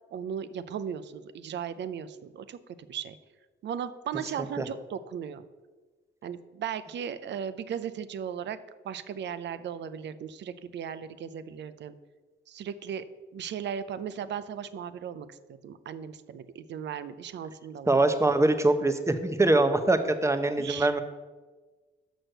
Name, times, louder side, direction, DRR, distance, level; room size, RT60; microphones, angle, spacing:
voice 1, 0.1-3.2 3.6-5.4 6.2-8.6 8.8-11.9 12.5-13.0 13.3-15.3 15.6-18.0 20.6-21.0, right 8 dB, 65° right, 14 dB, 0.6 m, -37 dB
voice 2, 17.9-21.0, right 2 dB, 15° right, 8 dB, 0.8 m, -23 dB
6.3 x 6.2 x 6.6 m, 1.3 s
cardioid pair, 95°, 19 cm